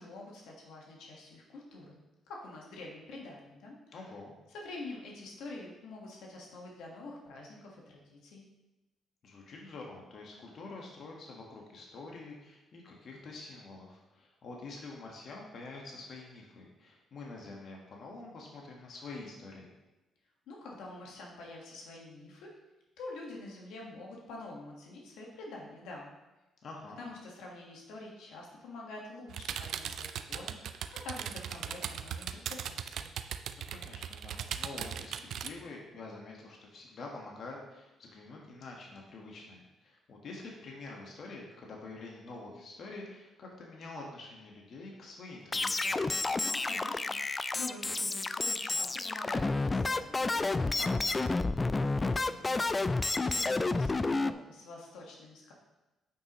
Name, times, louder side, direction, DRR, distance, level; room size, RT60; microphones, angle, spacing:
voice 1, 0.0-4.0 4.5-8.4 20.5-22.5 23.0-26.1 27.0-33.1 46.3-51.3 52.1-55.5, left 2 dB, 85° left, -2 dB, 1.6 m, -46 dB
voice 2, 3.9-4.4 9.2-19.7 26.6-27.0 33.5-46.0 51.8-52.4, left 3 dB, 60° left, -1 dB, 1.4 m, -47 dB
sound 1, 29.3-35.5, right 8 dB, 70° right, 0.4 m, -38 dB
sound 2, 45.5-54.3, left 3 dB, 25° left, 0.3 m, -30 dB
9.0 x 5.8 x 3.1 m, 1.1 s
cardioid pair, 90°, 0 cm